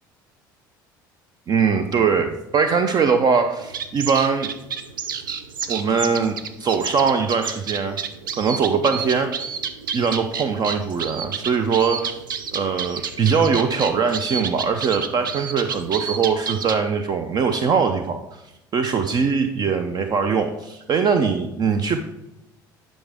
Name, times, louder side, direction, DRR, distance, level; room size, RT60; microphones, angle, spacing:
voice 1, 1.5-4.5 5.7-8.0 8.4-9.6 9.9-12.2 12.5-18.2 18.7-22.0, right 5 dB, 40° right, 8 dB, 0.6 m, -21 dB
sound 1, 3.6-16.8, right 6 dB, 85° right, 0.6 m, -31 dB
10.0 x 5.4 x 3.5 m, 0.92 s
hypercardioid pair, 65°, 11 cm